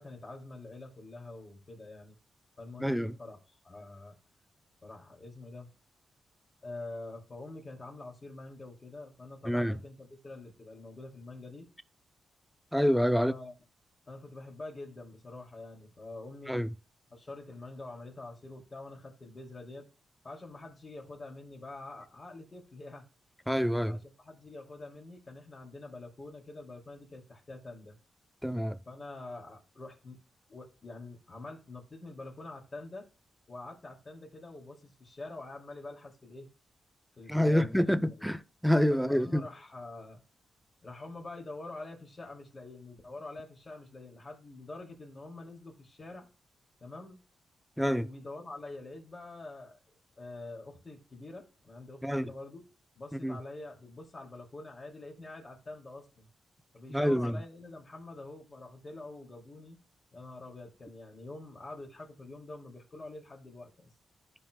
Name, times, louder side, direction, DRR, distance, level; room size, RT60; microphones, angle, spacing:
voice 1, 0.0-2.2 2.6-4.2 4.8-5.7 6.6-11.7 13.1-13.5 14.1-16.7 17.1-19.9 20.2-23.1 23.9-28.0 28.9-30.2 30.5-33.1 33.5-36.5 37.2-38.3 38.9-40.2 40.8-46.3 46.8-47.2 47.8-52.7 53.0-56.3 56.7-59.8 60.1-63.9, left 2 dB, 30° left, 2.4 m, -46 dB
voice 2, 2.8-3.1 9.5-9.8 12.7-13.3 16.5-16.7 23.5-24.0 28.4-28.8 37.3-38.4 38.6-39.4 47.8-48.1 52.0-52.3 53.2-53.4 56.9-57.4, equal, ahead, 0.5 m, -27 dB
14.0 x 4.7 x 2.2 m
cardioid pair, 110°, 0 cm